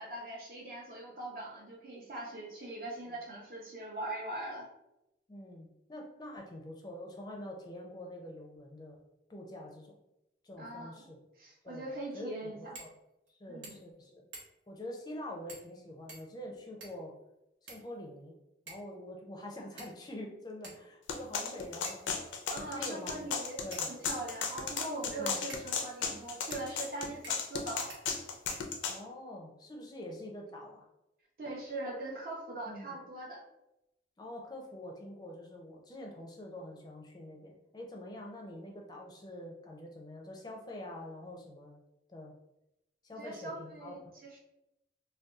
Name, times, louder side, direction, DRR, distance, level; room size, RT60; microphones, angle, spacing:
voice 1, 0.0-4.7 10.6-11.1 11.4-12.8 13.5-13.8 22.5-23.6 23.9-27.9 31.4-33.4 43.2-44.4, right 2 dB, 50° right, -3 dB, 0.6 m, -41 dB
voice 2, 5.3-9.0 9.3-10.0 10.4-11.2 11.6-11.8 12.1-12.5 12.8-12.9 13.3-14.2 14.7-17.1 17.7-18.3 18.7-22.1 22.7-23.2 23.6-23.9 25.0-25.4 28.9-30.8 32.7-33.0 34.2-41.8 42.1-42.3 43.0-44.0, left 1 dB, 20° left, 0 dB, 0.4 m, -45 dB
sound 1, 12.7-13.0 13.3-13.4 13.6-14.0 14.3-14.7 15.5-15.7 16.1-17.1 17.7-18.2 18.7-18.9 19.8-20.2 20.6-20.8 21.8-22.2 23.0-23.1 23.7-24.6 25.5-25.7 26.5-26.6 27.2-27.6 27.9-28.0 28.5-29.0, right 3 dB, 90° right, 0.9 m, -50 dB
sound 2, 21.1-29.0, left 5 dB, 85° left, 0.4 m, -35 dB
2.6 x 2.2 x 3.5 m, 0.88 s
head